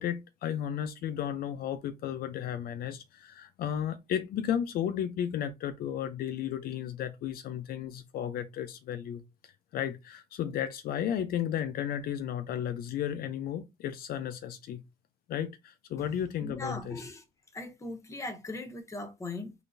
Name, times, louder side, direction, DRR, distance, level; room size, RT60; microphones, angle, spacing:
voice 1, 0.0-14.8 15.3-17.0, left 9 dB, 65° left, 0.5 m, -34 dB
voice 2, 16.4-17.2 17.5-19.5, left 2 dB, 15° left, 0.9 m, -39 dB
3.8 x 3.3 x 2.5 m
cardioid pair, 110°, 17 cm